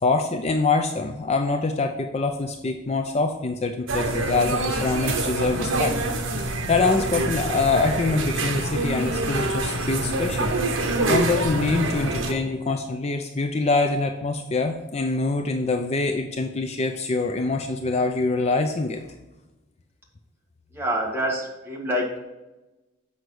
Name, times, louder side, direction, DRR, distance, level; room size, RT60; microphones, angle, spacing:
voice 1, 0.0-5.9 6.7-10.5 11.1-19.0, left 3 dB, 30° left, 5 dB, 0.5 m, -24 dB
sound 1, 3.9-12.3, right 2 dB, 75° right, 1.0 m, -26 dB
voice 2, 20.7-22.2, equal, 10° right, -3 dB, 1.8 m, -26 dB
7.9 x 5.6 x 4.8 m, 1.0 s
head